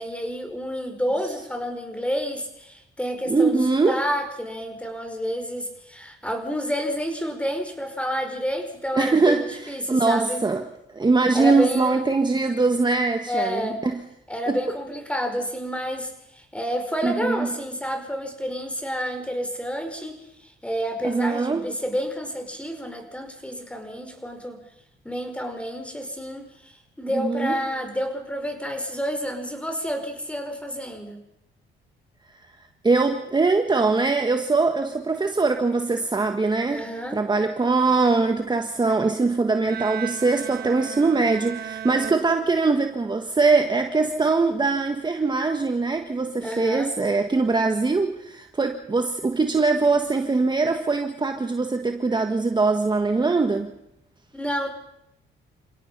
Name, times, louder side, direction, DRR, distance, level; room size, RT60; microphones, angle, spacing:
voice 1, 0.0-10.4 11.3-12.0 13.3-13.8 14.3-24.6 25.0-31.2 36.7-37.2 46.4-46.9 54.3-54.7, equal, 5° left, 5 dB, 5.0 m, -29 dB
voice 2, 3.3-4.0 9.0-10.6 10.9-14.0 14.5-14.6 17.0-17.5 21.0-21.6 27.1-27.5 32.8-36.8 37.1-53.7, right 3 dB, 20° right, 6 dB, 1.5 m, -22 dB
Bowed string instrument, 39.7-43.0, right 10 dB, 50° right, 1.3 m, -36 dB
29.0 x 17.0 x 5.6 m, 0.81 s
cardioid pair, 90°, 20 cm